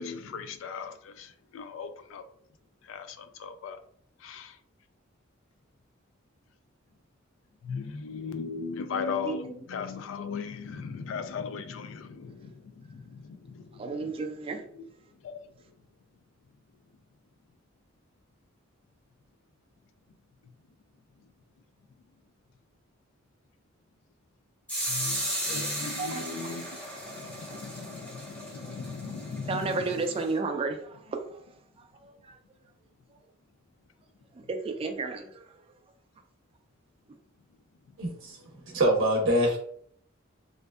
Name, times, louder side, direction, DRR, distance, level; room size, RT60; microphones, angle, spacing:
voice 1, 0.0-2.2 2.9-3.8 4.2-4.5 7.6-13.8 14.8-14.9 15.2-15.4 24.9-26.8 27.1-29.8, left 5 dB, 75° left, 0.3 m, -38 dB
voice 2, 9.2-9.6 13.8-14.6 25.5-25.6 26.0-26.4 29.5-31.5 32.0-32.4 34.3-35.5, right 3 dB, 30° right, 0.3 m, -33 dB
sound 1, 24.7-30.3, equal, 5° left, 0.7 m, -35 dB
voice 3, 38.0-38.4 38.7-39.6, right 1 dB, 75° right, 0.6 m, -24 dB
2.5 x 2.1 x 2.3 m
head